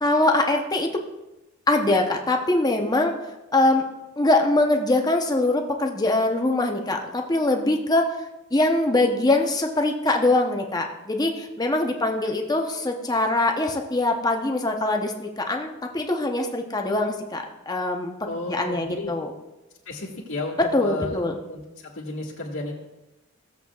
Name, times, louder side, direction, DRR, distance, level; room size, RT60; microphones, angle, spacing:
voice 1, 0.0-1.0 1.7-3.1 3.5-3.9 4.2-8.1 8.5-18.1 18.5-19.3 20.7-21.4, left 2 dB, 20° left, 3 dB, 0.8 m, -23 dB
voice 2, 18.3-19.2 19.9-21.2 21.5-22.7, left 2 dB, 70° left, -3 dB, 1.8 m, -32 dB
16.0 x 7.7 x 2.4 m, 1.0 s
head